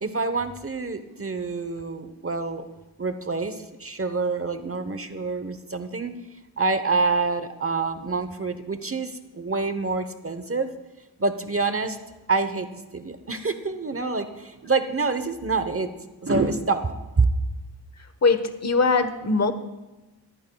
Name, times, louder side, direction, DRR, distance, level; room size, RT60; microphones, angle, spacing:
voice 1, 0.0-2.6 3.0-6.1 6.6-10.7 11.2-12.0 12.3-12.7 12.9-15.9 16.2-17.3, right 4 dB, 30° right, 9 dB, 1.0 m, -26 dB
voice 2, 18.0-19.5, left 4 dB, 35° left, 9 dB, 1.2 m, -22 dB
21.0 x 14.0 x 2.3 m, 1.1 s
cardioid pair, 60°, 43 cm